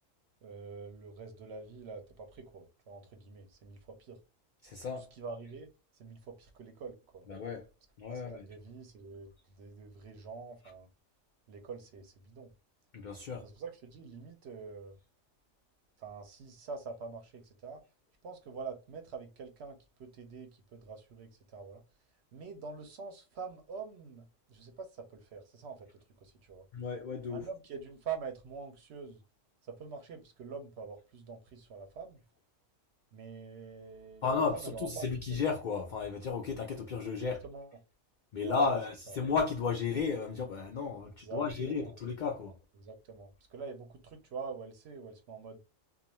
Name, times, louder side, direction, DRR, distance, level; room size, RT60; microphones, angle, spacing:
voice 1, 0.4-4.2 5.1-5.7 5.9-7.3 8.1-9.3 9.6-10.9 11.5-12.5 13.4-14.9 16.0-17.8 18.2-21.8 22.3-26.7 27.3-29.2 29.6-32.2 33.1-35.1 37.2-37.7 38.4-38.8 39.1-39.2 41.2-41.9 42.8-45.6, right 5 dB, 65° right, 0.8 m, -45 dB
voice 2, 4.6-5.1 7.3-7.7 8.0-8.5 12.9-13.5 26.7-27.4 34.2-37.4 38.3-42.6, left 5 dB, 75° left, 0.4 m, -33 dB
2.4 x 2.2 x 2.9 m
omnidirectional pair, 1.4 m